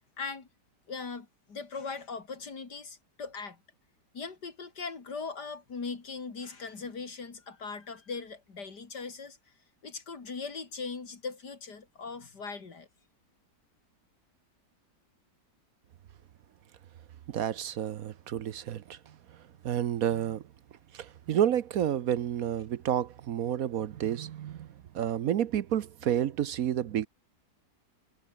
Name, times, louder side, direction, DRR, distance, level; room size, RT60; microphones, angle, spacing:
voice 1, 0.2-0.5 0.9-3.6 4.1-9.4 9.8-12.9, left 4 dB, 70° left, 3.6 m, -39 dB
voice 2, 17.3-19.1 19.6-20.4 20.9-24.7 24.9-27.1, right 10 dB, 60° right, 1.1 m, -30 dB
omnidirectional pair, 1.8 m